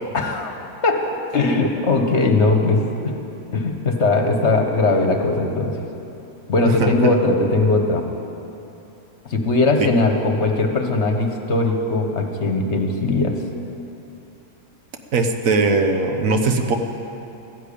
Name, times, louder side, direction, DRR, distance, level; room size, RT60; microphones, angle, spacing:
voice 1, 0.1-0.5 0.8-1.0 1.3-3.1 3.5-5.8 6.5-8.0 9.2-13.3, left 2 dB, 50° left, 4 dB, 1.5 m, -19 dB
voice 2, 6.8-7.1 9.8-10.0 15.1-16.8, right 3 dB, 65° right, 6 dB, 1.4 m, -20 dB
14.0 x 10.0 x 8.6 m, 2.9 s
omnidirectional pair, 1.5 m